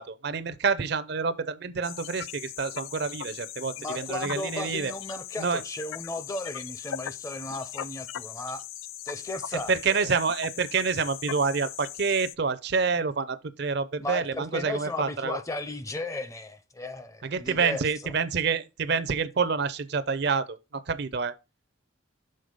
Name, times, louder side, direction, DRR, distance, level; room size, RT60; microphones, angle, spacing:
voice 1, 0.0-4.9 5.4-5.6 9.7-15.4 17.2-21.3, right 5 dB, 55° right, 0.5 m, -28 dB
sound 1, 1.8-12.4, left 11 dB, 85° left, 0.4 m, -39 dB
voice 2, 3.8-8.6 9.0-10.1 14.0-18.1, left 2 dB, 15° left, 0.5 m, -35 dB
6.5 x 4.0 x 5.1 m
head